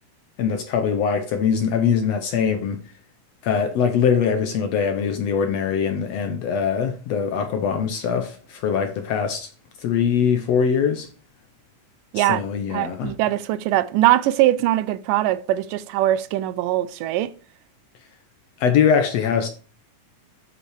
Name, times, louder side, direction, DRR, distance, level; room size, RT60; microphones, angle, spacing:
voice 1, 0.4-2.8 3.4-9.5 9.8-11.1 12.1-13.1 18.6-19.5, left 7 dB, 75° left, 1.6 m, -22 dB
voice 2, 12.7-17.3, right 14 dB, 90° right, 2.2 m, -21 dB
8.8 x 5.3 x 4.8 m
omnidirectional pair, 3.7 m